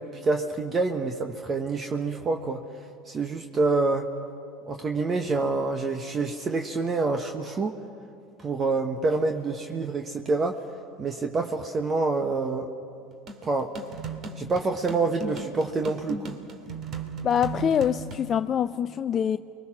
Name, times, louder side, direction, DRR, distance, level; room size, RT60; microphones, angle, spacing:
voice 1, 0.0-2.6 3.0-4.1 4.7-7.8 8.4-10.6 11.0-12.7 13.4-13.7 14.4-16.4, right 3 dB, 30° right, 1.4 m, -27 dB
sound 1, 13.3-18.3, right 3 dB, 45° right, 2.4 m, -37 dB
voice 2, 17.2-19.4, left 8 dB, 40° left, 0.5 m, -25 dB
30.0 x 22.5 x 6.1 m
hypercardioid pair, 75°, 0 cm